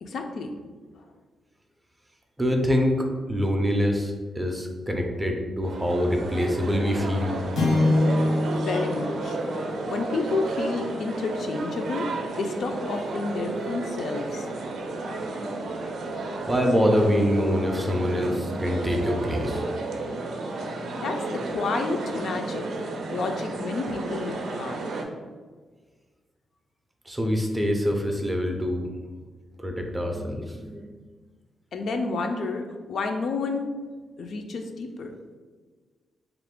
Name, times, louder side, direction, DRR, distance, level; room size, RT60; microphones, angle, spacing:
voice 1, 0.0-0.5 1.0-1.1 8.7-14.5 21.0-22.7 23.1-24.8 31.7-33.8 34.2-35.1, left 3 dB, 60° left, 4 dB, 0.3 m, -30 dB
voice 2, 2.4-7.4 16.4-19.6 27.1-28.9 29.6-30.9, equal, 10° right, 2 dB, 0.4 m, -25 dB
sound 1, 5.6-25.0, right 2 dB, 70° right, 0.4 m, -32 dB
sound 2, 7.5-12.0, left 2 dB, 85° left, 1.0 m, -27 dB
3.3 x 2.4 x 3.5 m, 1.4 s
wide cardioid pair, 140°, 0 cm